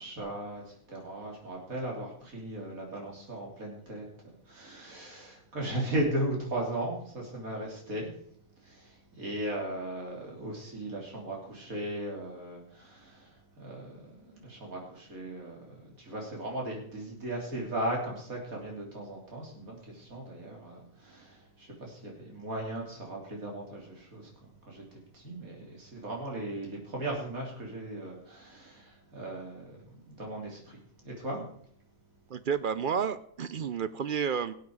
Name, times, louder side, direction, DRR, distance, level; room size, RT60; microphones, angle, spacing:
voice 1, 0.0-8.1 8.6-31.4, right 1 dB, 90° right, -1 dB, 3.8 m, -37 dB
voice 2, 32.3-34.5, right 7 dB, 55° right, 13 dB, 0.6 m, -31 dB
18.0 x 8.1 x 4.7 m, 0.64 s
omnidirectional pair, 1.4 m